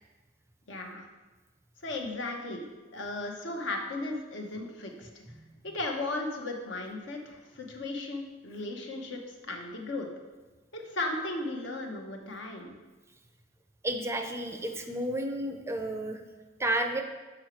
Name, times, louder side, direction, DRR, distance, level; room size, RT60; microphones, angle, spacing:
voice 1, 0.7-1.0 1.8-2.7 2.9-5.2 5.6-10.1 10.7-12.7, left 2 dB, 70° left, 2 dB, 1.0 m, -36 dB
voice 2, 13.8-16.2 16.6-17.0, right 1 dB, 15° right, 5 dB, 0.4 m, -31 dB
6.4 x 5.0 x 4.4 m, 1.2 s
head